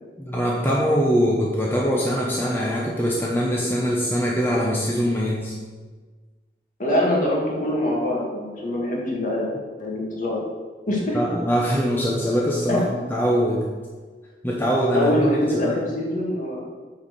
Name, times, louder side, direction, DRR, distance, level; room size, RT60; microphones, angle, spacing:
voice 1, 0.2-5.5 11.1-13.6 14.4-15.7, equal, 10° left, -4 dB, 1.0 m, -22 dB
voice 2, 6.8-9.5 9.8-10.4 10.9-11.2 12.7-12.8 14.9-16.6, left 1 dB, 45° left, -3 dB, 2.3 m, -24 dB
8.9 x 4.8 x 6.6 m, 1.4 s
head